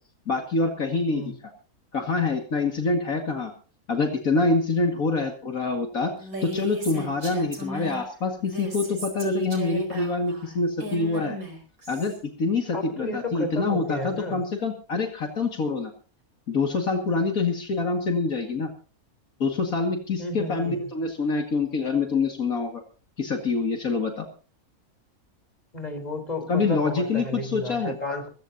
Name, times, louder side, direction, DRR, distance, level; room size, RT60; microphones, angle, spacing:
voice 1, 0.3-1.2 1.9-3.5 3.9-6.1 6.4-11.4 11.9-15.9 16.5-18.7 19.4-22.8 23.2-24.3 26.5-27.9, left 3 dB, 70° left, 3 dB, 2.5 m, -26 dB
Female speech woman speaking, 6.2-8.0 8.4-12.2, right 2 dB, 70° right, 5.0 m, -35 dB
voice 2, 12.7-14.4 20.2-20.8 25.7-28.3, left 1 dB, 25° left, 6 dB, 4.3 m, -32 dB
23.5 x 15.0 x 2.8 m, 0.36 s
omnidirectional pair, 1.5 m